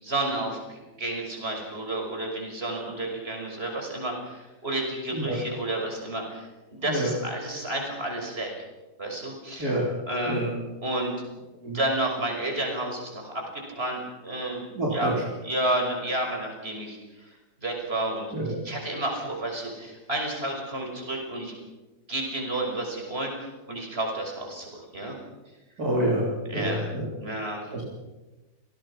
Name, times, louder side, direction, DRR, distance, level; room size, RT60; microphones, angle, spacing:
voice 1, 0.0-8.5 9.0-9.7 10.1-10.5 10.8-11.1 11.7-14.6 14.9-15.2 15.4-17.0 17.6-18.3 18.6-21.5 22.1-25.2 26.5-26.8 27.2-27.9, right 1 dB, 35° right, 1 dB, 6.1 m, -31 dB
voice 2, 14.7-15.1 18.3-18.6 25.8-27.1 27.7-27.9, right 1 dB, 60° right, -3 dB, 4.3 m, -27 dB
28.0 x 19.0 x 5.8 m, 1.1 s
omnidirectional pair, 1.9 m